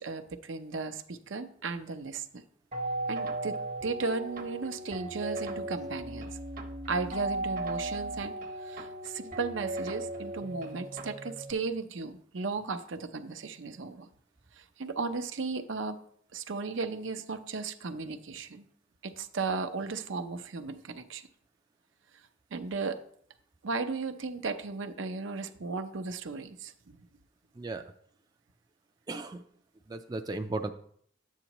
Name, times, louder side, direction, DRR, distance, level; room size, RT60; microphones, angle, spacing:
voice 1, 0.0-2.2 3.1-3.6 3.8-6.3 6.9-8.3 8.7-14.1 14.8-16.0 16.3-18.6 19.0-21.2 22.5-23.0 23.6-27.0, right 4 dB, 75° right, 8 dB, 0.6 m, -35 dB
sound 1, 2.7-11.5, right 2 dB, 45° right, 0.9 m, -37 dB
voice 2, 27.6-27.9 29.1-29.4 29.9-30.7, right 2 dB, 20° right, 5 dB, 0.4 m, -35 dB
9.9 x 8.2 x 3.0 m, 0.63 s
head